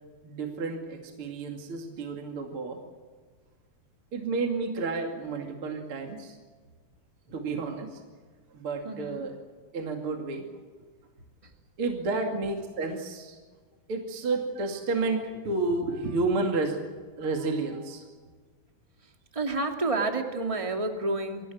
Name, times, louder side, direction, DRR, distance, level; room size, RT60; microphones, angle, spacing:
voice 1, 0.2-2.8 4.1-6.4 7.3-8.0 8.5-9.4 9.7-10.4 11.8-13.4 13.9-16.8 17.2-18.0, right 3 dB, 40° right, 3 dB, 2.8 m, -31 dB
voice 2, 8.8-9.2 11.4-11.5 12.1-12.3 19.3-21.5, right 3 dB, 10° right, 4 dB, 1.8 m, -30 dB
25.5 x 16.5 x 9.3 m, 1.5 s
omnidirectional pair, 4.4 m